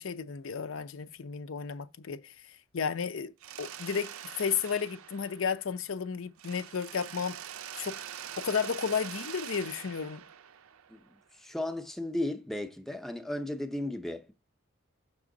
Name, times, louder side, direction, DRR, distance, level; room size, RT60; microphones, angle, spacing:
voice 1, 0.0-3.3 3.6-4.1 4.4-7.4 7.8-8.0 8.4-10.2, left 6 dB, 75° left, 0.5 m, -33 dB
Mechanisms, 3.4-6.0 6.4-11.2, right 10 dB, 85° right, 0.5 m, -44 dB
voice 2, 11.3-14.3, left 1 dB, ahead, 0.5 m, -35 dB
6.1 x 6.0 x 3.8 m
head